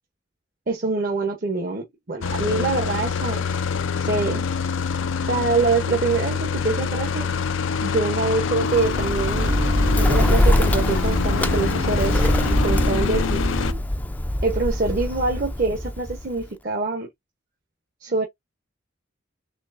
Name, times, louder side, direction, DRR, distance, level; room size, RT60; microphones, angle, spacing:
voice 1, 0.7-3.5 4.0-4.5 5.2-7.3 7.8-9.6 9.9-13.4 14.4-17.1 18.0-18.3, right 3 dB, 45° right, 0.9 m, -25 dB
sound 1, 2.2-13.7, left 6 dB, 85° left, 0.5 m, -26 dB
sound 2, 8.6-13.8, right 2 dB, 85° right, 0.9 m, -33 dB
Bird, 8.7-16.5, left 1 dB, 10° left, 0.4 m, -23 dB
4.4 x 3.2 x 2.5 m
head